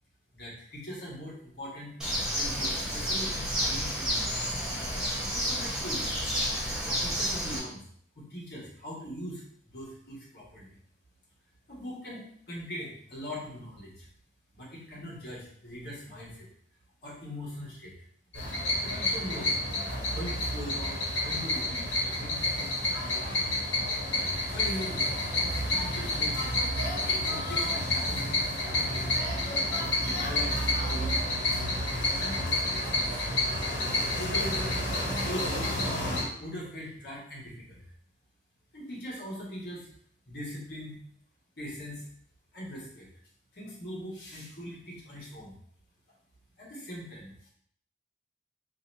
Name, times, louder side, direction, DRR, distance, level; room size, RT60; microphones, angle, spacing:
voice 1, 0.3-4.5 5.2-6.2 6.8-7.8 8.1-10.8 11.7-14.1 14.5-16.5 17.0-17.9 18.8-19.6 20.1-23.5 24.5-26.4 27.2-29.3 30.1-33.4 34.2-34.8 35.2-35.8 36.4-37.8 38.7-39.9 40.3-41.0 41.6-42.0 42.5-43.1 43.5-45.6 46.6-47.5, equal, 60° left, -4 dB, 1.3 m, -41 dB
Bird, 2.0-7.6, equal, 5° right, 0.8 m, -30 dB
sound 1, 18.3-36.2, left 1 dB, 80° left, 1.3 m, -29 dB
2.9 x 2.8 x 4.1 m, 0.64 s
head